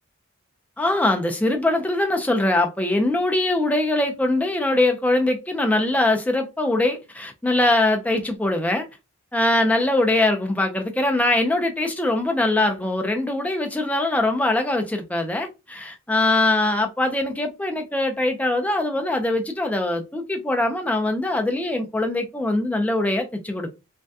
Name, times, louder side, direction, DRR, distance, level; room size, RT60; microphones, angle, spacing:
voice 1, 0.8-8.9 9.3-23.7, left 2 dB, 5° left, 0.4 m, -22 dB
3.3 x 2.2 x 2.6 m
head